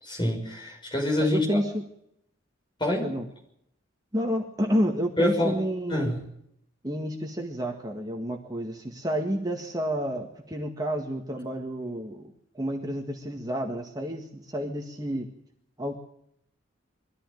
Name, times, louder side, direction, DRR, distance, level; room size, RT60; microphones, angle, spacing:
voice 1, 0.0-1.6 2.8-3.1 5.2-5.6 5.9-6.2, left 1 dB, 25° left, 1 dB, 5.9 m, -26 dB
voice 2, 1.2-1.8 3.0-3.3 4.1-6.1 6.8-15.3 15.8-16.0, equal, 20° right, 2 dB, 1.8 m, -30 dB
22.5 x 14.5 x 9.3 m, 0.74 s
head